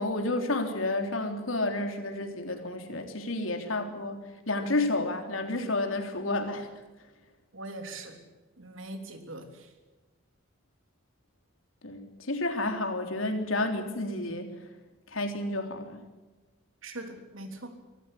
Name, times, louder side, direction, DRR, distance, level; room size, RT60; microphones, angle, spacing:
voice 1, 0.0-6.7 11.8-14.5 15.1-16.0, left 2 dB, 90° left, 5 dB, 3.5 m, -30 dB
voice 2, 7.5-8.2 8.6-9.7 16.8-17.8, right 2 dB, 85° right, 6 dB, 3.5 m, -41 dB
24.5 x 14.5 x 9.9 m, 1.1 s
head